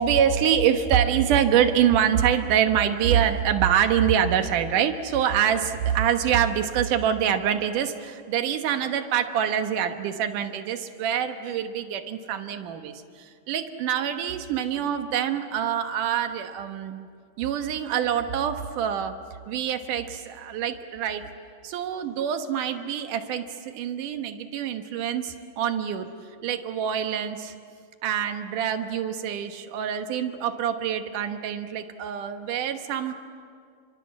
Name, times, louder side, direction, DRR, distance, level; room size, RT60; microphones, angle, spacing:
voice 1, 0.0-17.1 17.4-19.2 19.5-21.3 21.6-26.1 26.4-27.5 28.0-33.1, right 9 dB, 90° right, 7 dB, 2.8 m, -25 dB
29.5 x 25.0 x 7.5 m, 2.2 s
omnidirectional pair, 3.6 m